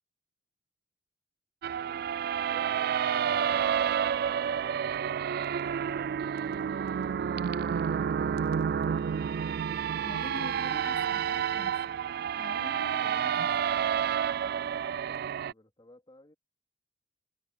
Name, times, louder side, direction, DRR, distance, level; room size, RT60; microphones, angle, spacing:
sound 1, 1.6-15.5, right 8 dB, 55° right, 0.3 m, -29 dB
voice 1, 1.7-2.1 14.4-16.3, left 1 dB, 25° left, 3.7 m, -59 dB
voice 2, 10.0-11.8 12.4-13.6, left 2 dB, 45° left, 1.2 m, -44 dB
open air
head